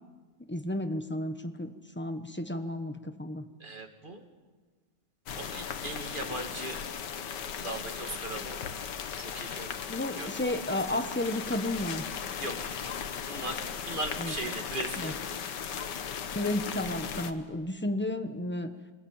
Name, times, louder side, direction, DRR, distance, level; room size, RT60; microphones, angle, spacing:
voice 1, 0.5-3.4 9.9-12.1 14.2-14.3 15.0-15.1 16.3-18.7, left 1 dB, 10° left, 8 dB, 1.0 m, -32 dB
voice 2, 3.6-4.2 5.3-6.8 7.6-8.6 9.2-9.7 10.1-10.3 12.4-12.7 13.3-15.2, right 2 dB, 30° right, 3 dB, 2.6 m, -38 dB
sound 1, 5.3-17.3, left 7 dB, 75° left, 1.8 m, -37 dB
25.5 x 20.5 x 8.9 m, 1.4 s
omnidirectional pair, 1.9 m